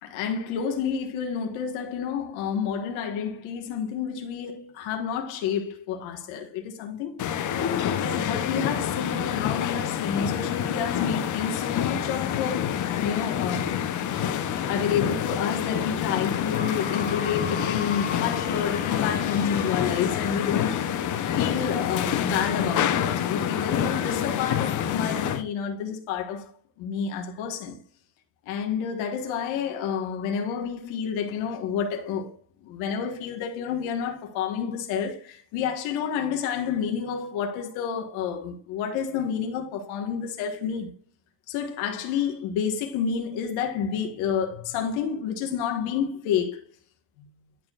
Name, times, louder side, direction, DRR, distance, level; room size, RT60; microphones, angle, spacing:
voice 1, 0.0-7.2 7.9-12.7 13.0-13.8 14.6-20.8 21.4-26.5 26.8-27.8 28.5-32.3 32.6-40.9 41.5-46.6, left 7 dB, 90° left, 1.6 m, -29 dB
sound 1, 7.2-25.4, left 9 dB, 40° left, 0.7 m, -27 dB
sound 2, 16.5-20.7, left 6 dB, 20° left, 1.3 m, -38 dB
11.0 x 4.4 x 2.4 m
cardioid pair, 150°, 45 cm